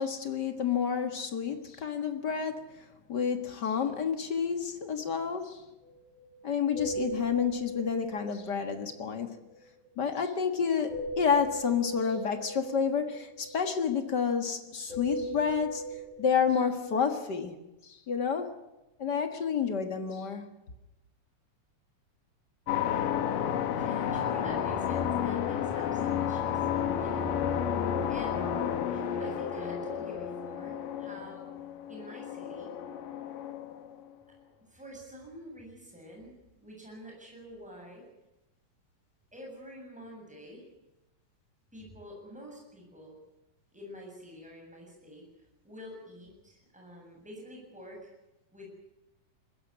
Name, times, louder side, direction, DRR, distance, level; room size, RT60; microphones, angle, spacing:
voice 1, 0.0-5.7 6.4-9.4 10.0-15.8 16.2-17.5 17.8-18.5 19.0-20.5, left 6 dB, 40° left, 7 dB, 1.6 m, -30 dB
sound 1, 5.8-5.9 6.1-6.4 6.7-10.0 10.9-14.6 14.9-17.4, right 1 dB, 65° right, 8.0 m, -40 dB
sound 2, 22.7-34.1, left 8 dB, 90° left, 3.0 m, -31 dB
voice 2, 23.7-27.4 28.1-28.4 28.9-31.4 31.9-32.7 34.6-38.0 39.3-40.7 41.7-43.2 43.7-45.3 45.6-48.1 48.5-48.7, equal, ahead, -1 dB, 7.3 m, -47 dB
21.5 x 16.0 x 9.7 m, 0.98 s
omnidirectional pair, 3.7 m